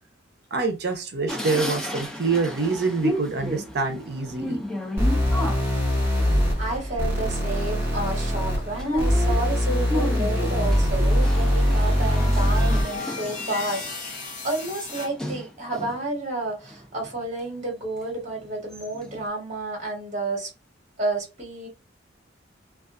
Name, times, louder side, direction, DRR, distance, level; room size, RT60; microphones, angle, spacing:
voice 1, 0.5-4.6, right 4 dB, 55° right, 0.6 m, -26 dB
sound 1, 1.3-16.1 16.5-17.5 18.0-18.1 18.4-19.2, equal, 5° left, 0.4 m, -34 dB
sound 2, 5.0-13.0, equal, 10° right, 1.0 m, -22 dB
voice 2, 6.6-20.5 21.0-21.7, right 2 dB, 35° right, 1.2 m, -31 dB
sound 3, 10.3-15.1, left 3 dB, 40° left, 0.7 m, -37 dB
2.4 x 2.3 x 2.4 m
head